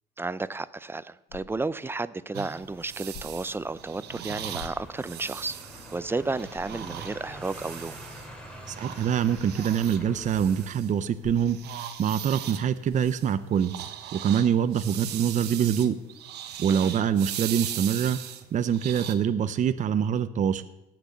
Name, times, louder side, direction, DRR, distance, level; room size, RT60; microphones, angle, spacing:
voice 1, 0.2-5.6 5.9-8.0 16.7-16.9, right 3 dB, 15° right, 16 dB, 0.5 m, -32 dB
sound 1, 1.3-1.8 3.1-3.6 4.6-5.2 5.7-5.8 6.5-6.9 9.3-9.6 11.2-11.7 12.9-13.2, left 5 dB, 70° left, 3.2 m, -46 dB
sound 2, 2.3-8.3 8.7-11.1 11.4-19.1, right 11 dB, 80° right, 1.3 m, -39 dB
sound 3, 2.6-10.7, equal, 5° left, 3.1 m, -46 dB
voice 2, 8.7-13.7 14.1-16.0 16.6-18.2 18.5-20.6, right 8 dB, 45° right, 11 dB, 0.8 m, -25 dB
17.5 x 6.2 x 8.2 m, 0.91 s
cardioid pair, 110°, 17 cm